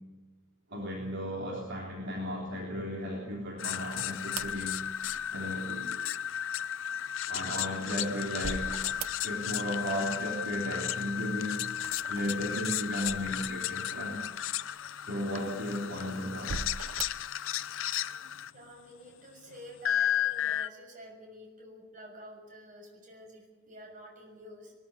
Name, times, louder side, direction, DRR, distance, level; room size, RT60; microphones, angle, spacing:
voice 1, 0.7-4.8 5.3-6.0 7.3-8.8 9.2-11.7 12.1-14.2 15.0-16.7, equal, 55° right, -2 dB, 3.5 m, -35 dB
sound 1, 3.6-18.5 19.8-20.7, left 10 dB, 60° left, 0.6 m, -34 dB
sound 2, 3.9-5.5 7.4-9.6 9.9-10.6 11.7-13.9 14.4-14.5 15.4-15.9 16.4-17.3, right 5 dB, 80° right, 0.8 m, -42 dB
voice 2, 18.5-24.7, equal, 35° right, 2 dB, 6.7 m, -49 dB
21.5 x 14.0 x 9.7 m, 1.2 s
head